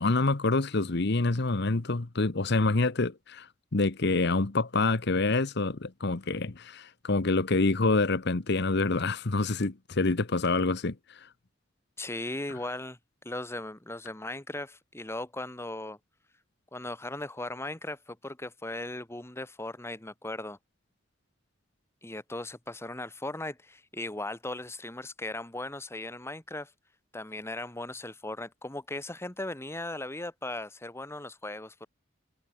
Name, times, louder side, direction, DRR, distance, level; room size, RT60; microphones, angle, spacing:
voice 1, 0.0-3.5 3.7-11.2, left 3 dB, 60° left, 1.1 m, -27 dB
voice 2, 12.0-13.0 13.2-16.0 16.7-20.6 22.0-26.7 27.1-31.9, left 2 dB, 15° left, 1.5 m, -38 dB
head